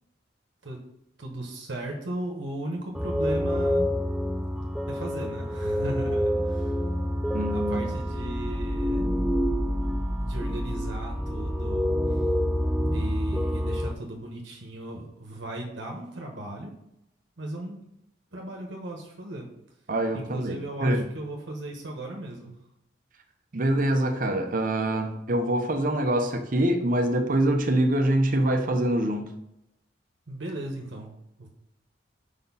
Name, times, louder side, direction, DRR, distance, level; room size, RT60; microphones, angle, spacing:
voice 1, 1.2-3.9 4.9-6.8 7.5-9.2 10.2-12.0 12.9-16.7 17.4-17.8 18.3-19.5 20.1-22.5 30.3-31.1 31.4-31.5, right 1 dB, 75° right, 1 dB, 1.0 m, -36 dB
sound 1, 2.9-13.9, equal, 5° right, 0.3 m, -27 dB
voice 2, 7.3-8.0 19.9-21.0 23.5-29.3, right 1 dB, 45° right, 5 dB, 0.7 m, -25 dB
5.2 x 4.3 x 5.4 m, 0.85 s
head